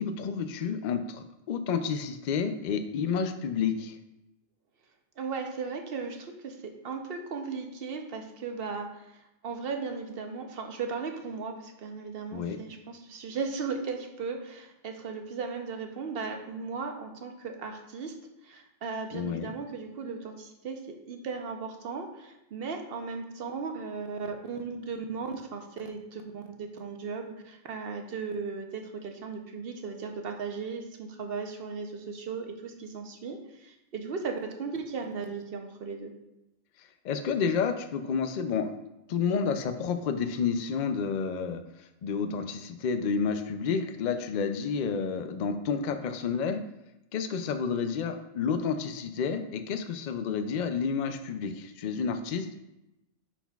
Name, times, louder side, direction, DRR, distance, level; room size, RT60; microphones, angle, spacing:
voice 1, 0.0-4.0 12.3-12.6 19.1-19.5 37.0-38.7 39.1-41.6 42.0-46.6 47.1-52.6, left 6 dB, 90° left, 8 dB, 0.4 m, -30 dB
voice 2, 5.2-18.1 18.4-36.1, right 5 dB, 55° right, 4 dB, 0.8 m, -37 dB
9.9 x 4.1 x 2.3 m, 0.91 s
omnidirectional pair, 1.3 m